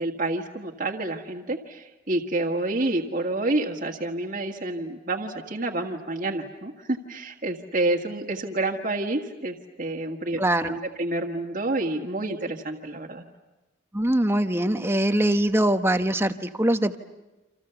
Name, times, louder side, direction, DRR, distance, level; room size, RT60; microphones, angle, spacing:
voice 1, 0.0-13.2, right 2 dB, 40° right, 1 dB, 1.8 m, -29 dB
voice 2, 10.4-10.8 13.9-17.0, right 1 dB, 10° right, 8 dB, 1.0 m, -22 dB
28.5 x 27.5 x 7.0 m, 1.1 s
head